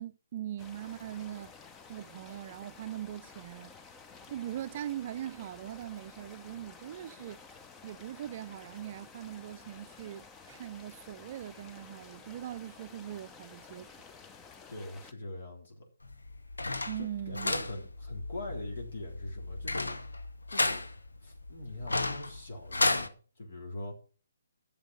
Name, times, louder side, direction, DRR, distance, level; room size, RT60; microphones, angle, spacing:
voice 1, 0.0-1.5 1.9-3.7 4.3-7.4 7.8-13.9 16.9-17.5, right 12 dB, 40° right, 0.5 m, -41 dB
sound 1, 0.6-15.1, left 5 dB, 15° left, 0.7 m, -52 dB
voice 2, 14.7-15.8 17.0-19.9 20.5-20.8 21.2-24.0, left 1 dB, 60° left, 3.5 m, -42 dB
sound 2, 16.0-23.1, left 2 dB, 85° left, 1.1 m, -33 dB
11.5 x 7.2 x 5.3 m
figure-of-eight pair, 145°, 0 cm